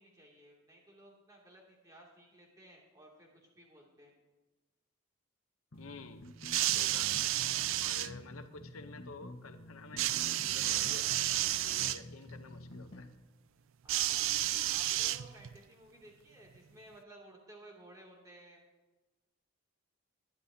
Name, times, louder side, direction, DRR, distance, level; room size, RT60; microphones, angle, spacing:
voice 1, 0.0-4.1 13.8-14.4 14.7-18.6, right 1 dB, 15° right, -2 dB, 2.5 m, -56 dB
voice 2, 5.7-6.2 6.7-7.1 7.8-11.1 11.6-13.1, left 3 dB, 85° left, 8 dB, 0.8 m, -50 dB
sound 1, 5.7-13.1, left 1 dB, 60° left, 1.3 m, -49 dB
sound 2, 6.4-8.1 10.0-12.0 13.9-15.6 16.5-16.6, right 14 dB, 70° right, 0.4 m, -31 dB
20.5 x 10.5 x 2.8 m, 1.2 s
head